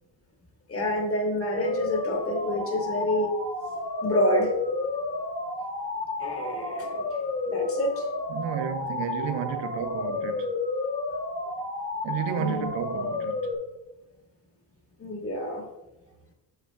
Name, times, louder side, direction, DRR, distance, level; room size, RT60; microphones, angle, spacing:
voice 1, 0.7-4.5 6.2-8.1 12.4-12.7 15.0-15.6, equal, 30° left, 1.5 m, -28 dB
sound 1, 1.6-13.5, left 3 dB, 50° left, 1.7 m, -31 dB
voice 2, 8.3-10.5 12.0-13.5, right 8 dB, 80° right, 0.8 m, -32 dB
8.9 x 6.7 x 2.3 m
cardioid pair, 90°, 44 cm